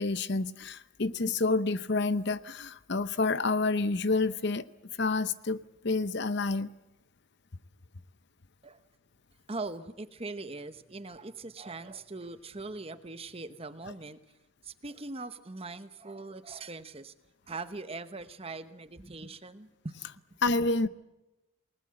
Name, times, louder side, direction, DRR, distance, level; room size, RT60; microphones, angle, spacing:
voice 1, 0.0-4.6 5.0-5.6 5.8-6.7 20.4-20.9, left 3 dB, 55° left, 14 dB, 0.8 m, -28 dB
voice 2, 9.5-14.2 14.6-17.1 17.5-20.0, right 3 dB, 25° right, 11 dB, 1.0 m, -41 dB
28.5 x 19.5 x 7.7 m, 0.96 s
head